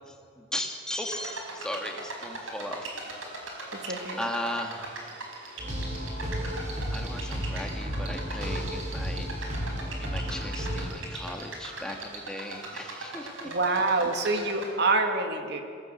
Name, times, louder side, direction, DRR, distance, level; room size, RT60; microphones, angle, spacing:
voice 1, 0.1-2.9 4.2-5.1 5.4-5.7 6.9-9.4 10.0-13.5, left 1 dB, 5° left, 3 dB, 1.9 m, -37 dB
sound 1, 1.1-14.7, right 2 dB, 80° right, 5.1 m, -40 dB
voice 2, 3.7-4.2 13.4-15.6, right 3 dB, 55° right, 5 dB, 2.1 m, -26 dB
sound 2, 5.6-10.9, equal, 35° right, 4.7 m, -33 dB
22.5 x 17.0 x 8.1 m, 2.3 s
head